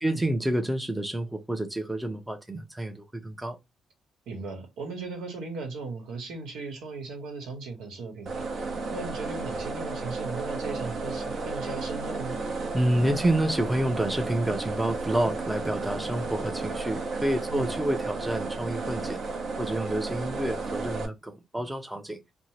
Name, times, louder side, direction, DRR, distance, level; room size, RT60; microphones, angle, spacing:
voice 1, 0.0-3.6 12.7-19.2 19.6-22.2, right 1 dB, 10° right, 0.5 m, -28 dB
voice 2, 4.3-12.4 17.5-17.7, right 3 dB, 90° right, 1.1 m, -37 dB
sound 1, 8.3-21.1, right 3 dB, 60° right, 0.7 m, -33 dB
2.6 x 2.1 x 3.0 m
cardioid pair, 90°, 0 cm